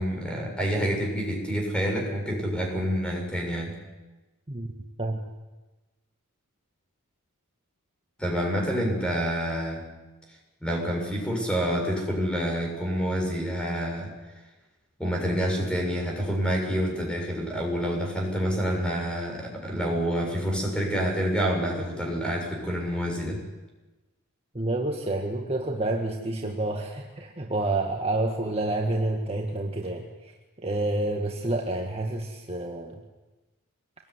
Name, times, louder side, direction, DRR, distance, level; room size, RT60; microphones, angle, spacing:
voice 1, 0.0-3.7 8.2-9.8 10.6-14.1 15.0-23.4, equal, 5° left, 1 dB, 7.0 m, -28 dB
voice 2, 24.5-33.0, right 2 dB, 25° right, 1 dB, 1.9 m, -29 dB
25.5 x 20.5 x 9.8 m, 1.2 s
head